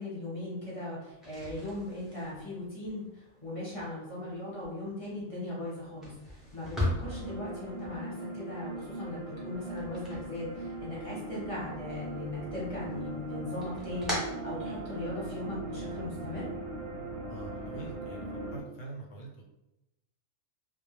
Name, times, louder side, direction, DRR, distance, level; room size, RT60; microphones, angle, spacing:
voice 1, 0.0-16.4, left 1 dB, 30° left, -7 dB, 0.8 m, -39 dB
sound 1, 1.1-11.1 11.4-12.3 12.6-15.3, left 1 dB, ahead, 0.5 m, -40 dB
sound 2, 7.0-18.6, right 2 dB, 70° right, 0.9 m, -40 dB
voice 2, 17.3-19.4, right 3 dB, 70° left, -1 dB, 1.0 m, -44 dB
2.2 x 2.1 x 3.1 m, 0.92 s
omnidirectional pair, 1.4 m